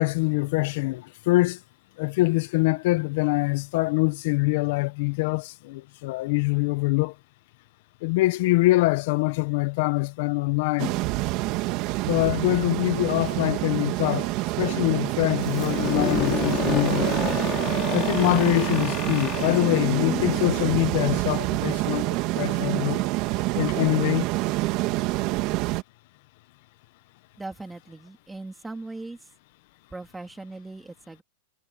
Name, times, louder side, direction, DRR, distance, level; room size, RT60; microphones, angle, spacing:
voice 1, 0.0-1.6 2.0-7.1 8.0-11.0 12.1-14.3 14.6-17.1 17.9-23.0 23.5-24.3, left 22 dB, 50° left, 1.1 m, -24 dB
sound 1, 10.8-25.8, right 20 dB, 40° right, 1.9 m, -27 dB
sound 2, 15.4-21.1, left 14 dB, 30° left, 5.1 m, -30 dB
voice 2, 27.4-29.2 29.9-31.2, right 2 dB, 5° right, 3.5 m, -39 dB
supercardioid pair, 155°, 0 cm